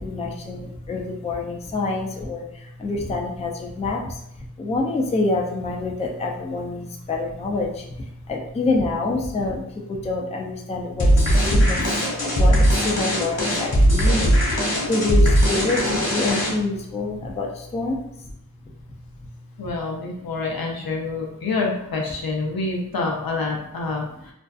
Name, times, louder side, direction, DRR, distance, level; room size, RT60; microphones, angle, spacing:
voice 1, 0.0-11.1 11.4-18.3, left 3 dB, 20° left, -1 dB, 0.3 m, -27 dB
sound 1, 11.0-16.8, equal, 45° left, 1.2 m, -19 dB
voice 2, 19.6-24.3, left 3 dB, 75° left, 0 dB, 0.6 m, -27 dB
2.5 x 2.3 x 2.3 m, 0.78 s
wide cardioid pair, 80°, 36 cm